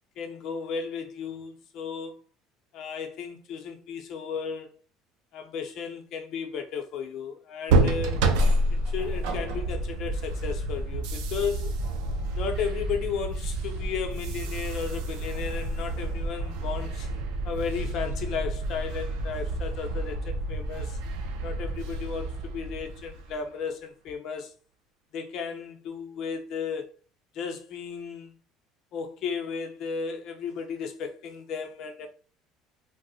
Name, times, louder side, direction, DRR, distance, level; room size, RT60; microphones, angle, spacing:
voice 1, 0.2-2.2 2.7-4.7 5.3-8.2 8.9-11.7 12.3-17.1 17.4-21.0 21.4-24.5 25.1-26.9 27.3-28.4 28.9-32.1, left 6 dB, 50° left, 0.5 m, -34 dB
sound 1, 7.7-23.4, right 2 dB, 80° right, 0.5 m, -29 dB
2.7 x 2.0 x 4.0 m
cardioid pair, 160°, 0 cm